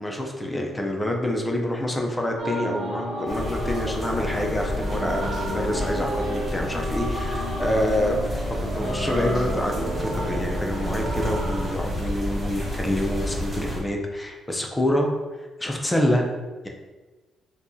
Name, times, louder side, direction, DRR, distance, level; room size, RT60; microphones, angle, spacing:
voice 1, 0.0-15.1 15.4-16.2, left 1 dB, 15° left, 1 dB, 0.6 m, -27 dB
sound 1, 2.4-11.7, equal, 70° right, 1.1 m, -31 dB
sound 2, 3.3-13.8, left 1 dB, 20° right, 1.3 m, -30 dB
4.6 x 2.3 x 2.7 m, 1.3 s
cardioid pair, 90°, 0 cm